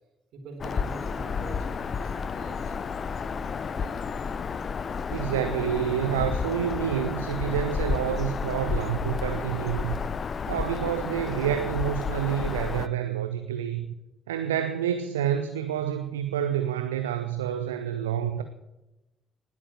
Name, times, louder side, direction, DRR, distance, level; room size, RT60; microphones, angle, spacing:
voice 1, 0.3-2.8, right 3 dB, 60° right, 4 dB, 4.2 m, -44 dB
Bird vocalization bird call bird song, 0.6-12.9, left 5 dB, 45° left, 0.9 m, -31 dB
voice 2, 5.1-10.0 10.5-13.9 14.3-18.4, right 10 dB, 80° right, 9 dB, 0.8 m, -28 dB
19.0 x 8.6 x 7.3 m, 0.96 s
figure-of-eight pair, 45°, 0 cm